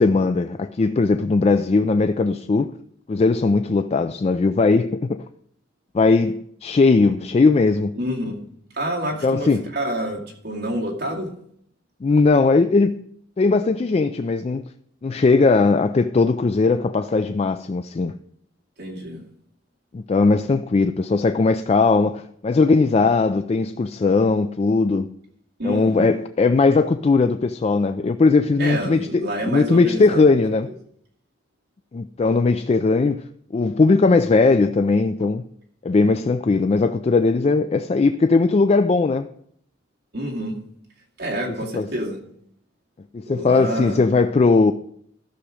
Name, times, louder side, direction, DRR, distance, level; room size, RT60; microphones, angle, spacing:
voice 1, 0.0-2.7 3.1-5.2 5.9-7.9 9.2-9.6 12.0-13.0 13.4-14.6 15.0-18.2 19.9-25.1 25.6-30.7 31.9-33.2 33.5-35.4 35.8-39.3 41.7-41.9 43.1-44.7, left 3 dB, 30° left, 0.3 m, -19 dB
voice 2, 8.0-8.4 8.7-11.3 18.8-19.2 25.6-26.0 28.6-30.3 40.1-40.6 41.2-42.2 43.3-44.0, equal, 55° right, 2.3 m, -28 dB
13.0 x 6.3 x 4.9 m
head